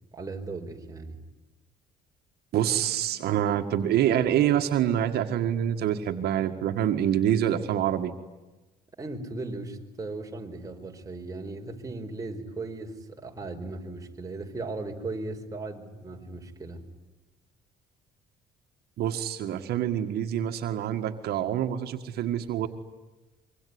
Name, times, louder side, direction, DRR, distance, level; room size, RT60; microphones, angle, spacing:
voice 1, 0.1-1.2 9.0-16.9, right 2 dB, 20° right, 3 dB, 4.6 m, -37 dB
voice 2, 2.5-8.1 19.0-22.7, right 10 dB, 70° right, 6 dB, 1.8 m, -26 dB
25.5 x 24.5 x 9.6 m, 1.1 s
cardioid pair, 110°, 17 cm